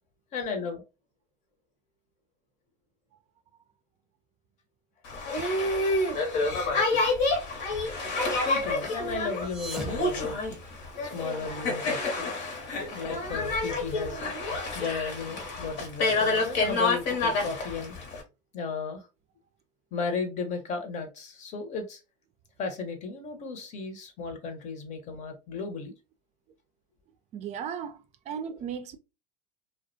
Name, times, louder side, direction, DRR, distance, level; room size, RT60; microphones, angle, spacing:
voice 1, 0.3-0.8 8.4-10.4 11.0-12.5 12.9-14.2 14.7-18.0 18.5-19.1 19.9-22.0 22.6-25.9, left 4 dB, 45° left, 0.8 m, -35 dB
Boat Water vehicle, 5.0-18.2, left 2 dB, 65° left, 0.9 m, -28 dB
sound 1, 9.3-11.2, right 1 dB, 5° right, 0.8 m, -41 dB
voice 2, 27.3-29.0, right 7 dB, 45° right, 0.4 m, -36 dB
2.3 x 2.1 x 2.5 m
supercardioid pair, 100°, 17 cm